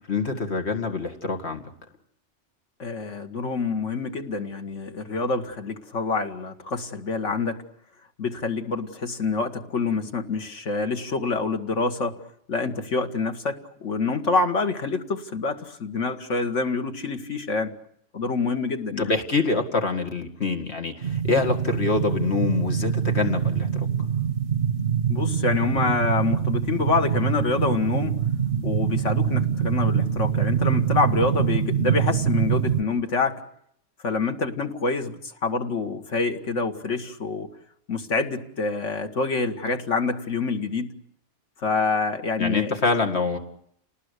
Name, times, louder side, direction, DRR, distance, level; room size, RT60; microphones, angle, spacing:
voice 1, 0.1-1.6 19.0-23.9 42.4-43.4, left 3 dB, 65° left, 4 dB, 2.3 m, -25 dB
voice 2, 2.8-7.6 8.2-12.1 12.5-17.7 18.1-19.1 25.1-28.2 28.6-33.4 34.0-37.5 37.9-40.9 41.6-42.8, left 4 dB, 85° left, 5 dB, 2.0 m, -26 dB
sound 1, 21.0-32.8, right 8 dB, 65° right, 1.5 m, -24 dB
29.0 x 19.5 x 8.2 m, 0.72 s
omnidirectional pair, 1.2 m